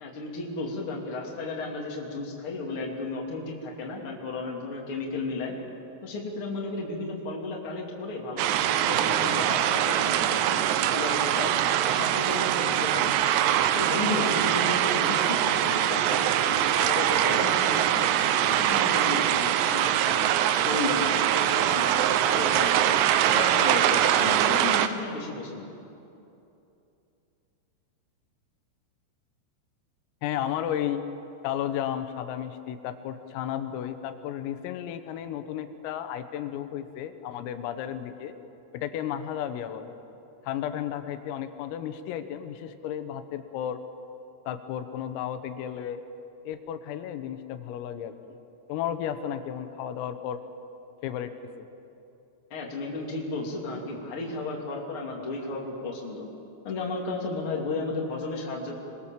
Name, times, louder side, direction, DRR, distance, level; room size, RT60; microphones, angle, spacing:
voice 1, 0.0-5.5 6.0-11.5 11.9-13.1 13.7-20.3 20.6-23.0 23.3-25.7 52.5-56.3 56.6-58.8, left 3 dB, 30° left, -1 dB, 3.1 m, -34 dB
sound 1, 8.4-24.9, right 11 dB, 85° right, 2.5 m, -23 dB
voice 2, 30.2-31.1 31.4-38.4 38.7-39.9 40.4-43.8 44.5-46.0 46.5-48.1 48.7-50.4 51.0-51.3 51.6-51.7, left 10 dB, 85° left, 9 dB, 3.7 m, -33 dB
26.5 x 21.5 x 7.4 m, 2.8 s
omnidirectional pair, 5.9 m